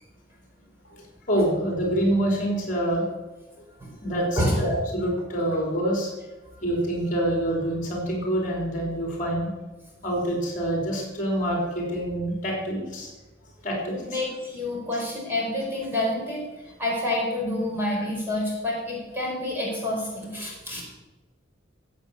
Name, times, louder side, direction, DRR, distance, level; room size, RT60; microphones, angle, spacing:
voice 1, 0.9-3.0 4.0-6.1 6.6-9.5 10.0-13.1 13.6-14.2 14.9-15.0 17.8-18.0, right 1 dB, 40° left, -1 dB, 4.0 m, -26 dB
voice 2, 14.1-16.4 16.8-20.8, left 1 dB, 10° right, -3 dB, 4.6 m, -28 dB
16.0 x 8.1 x 7.1 m, 1.2 s
head